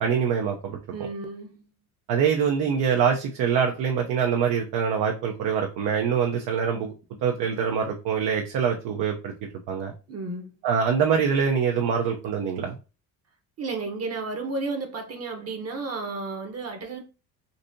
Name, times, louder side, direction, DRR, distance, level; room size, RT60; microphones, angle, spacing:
voice 1, 0.0-0.8 2.1-6.9 7.2-9.9 10.6-12.8, right 7 dB, 70° right, 0.7 m, -24 dB
voice 2, 0.9-1.7 10.1-10.6 13.6-17.0, right 3 dB, 40° right, 0.9 m, -32 dB
4.0 x 2.7 x 2.6 m
supercardioid pair, 85°, 39 cm